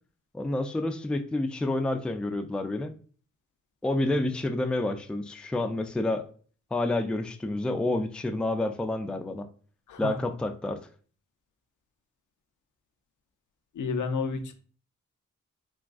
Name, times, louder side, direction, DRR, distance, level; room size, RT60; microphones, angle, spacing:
voice 1, 0.3-2.9 3.8-6.2 6.7-9.5 10.0-10.8, left 2 dB, 5° left, 7 dB, 0.3 m, -29 dB
voice 2, 13.7-14.5, left 5 dB, 75° left, 8 dB, 0.5 m, -30 dB
3.5 x 2.2 x 2.4 m, 0.42 s
cardioid pair, 45°, 31 cm